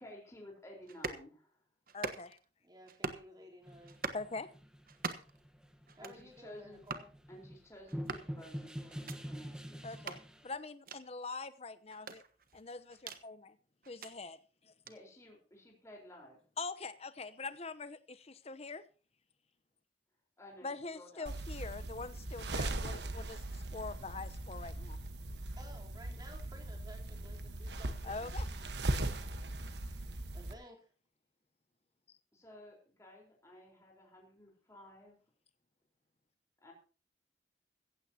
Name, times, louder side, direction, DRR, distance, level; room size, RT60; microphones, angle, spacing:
voice 1, 0.0-1.5 6.0-6.8 7.3-9.8 14.9-16.4 20.4-21.3 32.3-35.2 36.6-36.7, left 1 dB, 15° left, -1 dB, 4.2 m, -54 dB
sound 1, 0.9-1.3 1.9-2.4 2.9-3.3 3.9-4.3 4.9-5.4 5.9-6.2 6.9-7.1 7.9-8.3 8.9-9.2 9.9-10.2 10.9-11.0 11.9-13.2 13.8-14.1 14.9-15.0, right 4 dB, 55° right, 1.3 m, -42 dB
voice 2, 1.9-2.4 4.1-4.5 9.8-12.2 12.5-13.6 13.9-14.4 14.6-14.7 16.6-18.8 20.6-25.0 28.0-28.5, left 3 dB, 35° left, 14 dB, 0.9 m, -43 dB
voice 3, 2.6-4.0 6.0-7.1 25.6-28.3 30.3-30.9, equal, 25° right, 0 dB, 3.6 m, -55 dB
sound 2, 3.7-10.5, equal, 5° right, 1.2 m, -45 dB
sound 3, 21.3-30.5, right 1 dB, 75° right, 1.3 m, -39 dB
15.5 x 15.5 x 2.9 m, 0.37 s
head